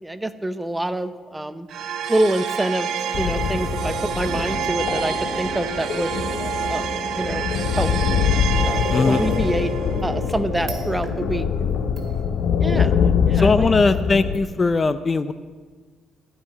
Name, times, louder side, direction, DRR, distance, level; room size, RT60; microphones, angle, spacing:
voice 1, 0.0-1.7 2.1-6.1 6.7-7.4 7.7-7.9 8.6-9.7 10.0-11.5 12.6-12.9 13.3-14.0, right 1 dB, 10° right, 11 dB, 0.7 m, -26 dB
sound 1, 1.7-12.8, right 7 dB, 75° right, 1.0 m, -29 dB
sound 2, 3.1-14.4, left 7 dB, 70° left, 0.7 m, -24 dB
sound 3, 6.4-8.7 10.0-10.3 10.7-11.4 11.7-12.8 13.3-13.4 14.3-14.4, right 4 dB, 50° right, 2.3 m, -39 dB
voice 2, 8.9-9.2 13.4-15.3, left 3 dB, 30° left, 13 dB, 0.5 m, -19 dB
14.0 x 5.8 x 9.5 m, 1.5 s
cardioid pair, 90°, 0 cm